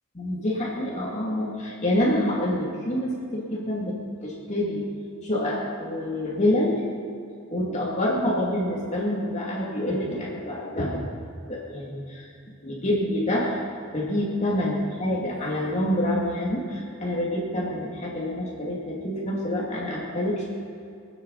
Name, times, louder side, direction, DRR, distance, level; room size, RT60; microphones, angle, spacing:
voice 1, 0.1-4.9 5.2-6.8 7.5-11.1 11.5-12.3 12.6-13.6 13.9-20.5, left 1 dB, 35° left, -4 dB, 2.6 m, -27 dB
24.0 x 9.6 x 4.1 m, 2.5 s
head